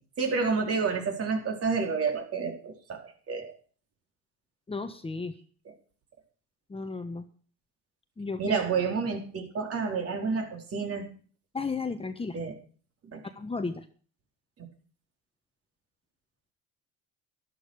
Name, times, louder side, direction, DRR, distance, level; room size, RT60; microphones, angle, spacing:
voice 1, 0.2-3.5 5.6-5.7 8.4-11.1 12.3-12.5 13.0-13.2, right 5 dB, 45° right, 3 dB, 4.5 m, -29 dB
voice 2, 4.7-5.3 6.7-7.2 8.2-8.6 11.5-12.4 13.4-13.8, left 4 dB, 15° left, 8 dB, 1.3 m, -34 dB
12.0 x 11.5 x 6.6 m, 0.42 s
supercardioid pair, 90°, 32 cm